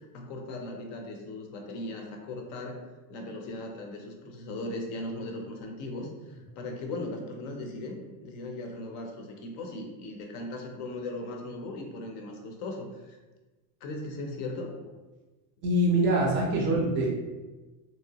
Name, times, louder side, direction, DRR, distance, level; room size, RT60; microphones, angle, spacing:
voice 1, 0.1-2.8 3.1-13.2 13.8-14.7, left 2 dB, 50° left, 2 dB, 0.5 m, -38 dB
voice 2, 15.6-17.1, right 1 dB, 25° right, -1 dB, 0.4 m, -24 dB
3.0 x 2.9 x 2.7 m, 1.2 s
cardioid pair, 160°, 49 cm